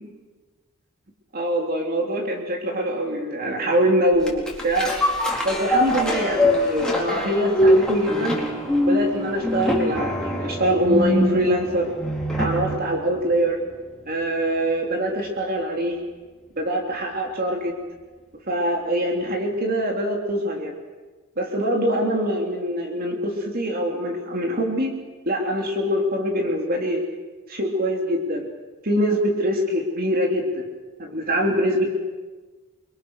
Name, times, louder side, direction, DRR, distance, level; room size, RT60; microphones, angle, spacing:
voice 1, 1.3-4.9 5.4-8.5 8.8-11.9 12.4-13.6 14.1-16.0 16.6-17.7 18.5-20.7 21.4-24.9 25.3-27.0 27.5-28.5 28.8-30.6 31.0-31.9, equal, 40° right, 1 dB, 3.2 m, -23 dB
sound 1, 4.2-12.8 13.2-13.3, left 1 dB, 5° left, 4.4 m, -23 dB
29.0 x 23.5 x 6.6 m, 1.3 s
head